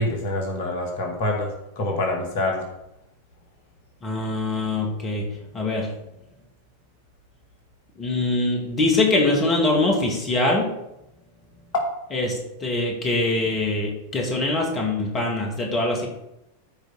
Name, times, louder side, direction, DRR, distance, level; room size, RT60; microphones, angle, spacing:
voice 1, 0.0-1.5 1.8-2.6, left 2 dB, 50° left, 1 dB, 2.1 m, -25 dB
voice 2, 4.0-5.3 5.5-5.9 8.0-10.7 12.1-16.1, left 2 dB, 25° left, 0 dB, 2.0 m, -23 dB
14.0 x 5.1 x 4.2 m, 0.87 s
figure-of-eight pair, 90°, 0 cm